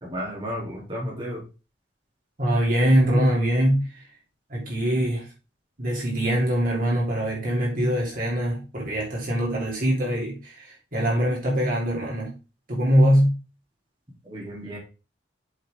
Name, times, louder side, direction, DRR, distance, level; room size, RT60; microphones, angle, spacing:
voice 1, 0.0-1.4 14.2-14.8, equal, 25° right, 3.3 m, -33 dB
voice 2, 2.4-4.0 4.5-5.3 5.8-12.3 12.7-13.3, equal, 45° right, 3.3 m, -23 dB
8.1 x 6.7 x 3.8 m
head